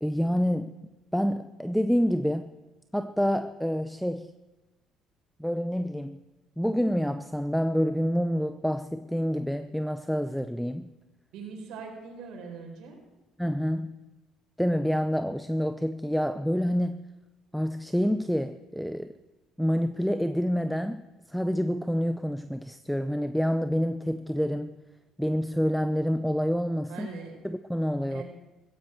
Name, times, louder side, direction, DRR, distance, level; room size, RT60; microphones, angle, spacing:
voice 1, 0.0-2.5 2.9-4.3 5.4-6.2 6.6-10.9 13.4-14.0 14.6-17.0 17.5-19.1 19.6-21.0 21.3-24.8 25.2-27.1 27.4-28.2, equal, ahead, 10 dB, 0.6 m, -27 dB
voice 2, 11.3-13.0 26.9-27.4 28.1-28.2, right 5 dB, 80° right, 2 dB, 4.4 m, -41 dB
16.0 x 15.0 x 4.5 m, 1.1 s
cardioid pair, 100°, 0 cm